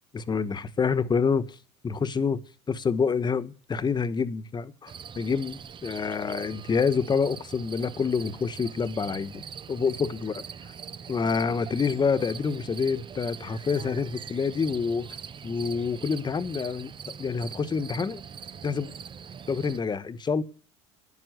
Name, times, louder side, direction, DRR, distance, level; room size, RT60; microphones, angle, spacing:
voice 1, 0.1-1.6 1.8-2.4 2.7-10.3 11.1-15.1 15.4-18.2 18.6-18.9 19.5-20.4, left 5 dB, 30° left, 1.4 m, -27 dB
sound 1, 4.9-19.8, right 7 dB, 30° right, 0.8 m, -42 dB
12.5 x 11.0 x 8.1 m
supercardioid pair, 85°, 16 cm